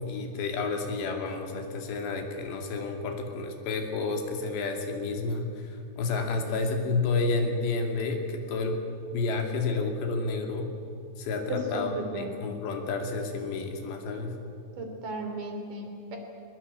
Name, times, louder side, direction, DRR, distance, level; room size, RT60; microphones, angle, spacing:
voice 1, 0.1-8.8 9.1-10.7 11.2-14.4, left 3 dB, 90° left, 4 dB, 4.8 m, -30 dB
voice 2, 11.5-12.3 14.8-16.2, right 2 dB, 50° right, 4 dB, 4.5 m, -35 dB
22.0 x 21.0 x 8.5 m, 2.6 s
omnidirectional pair, 4.8 m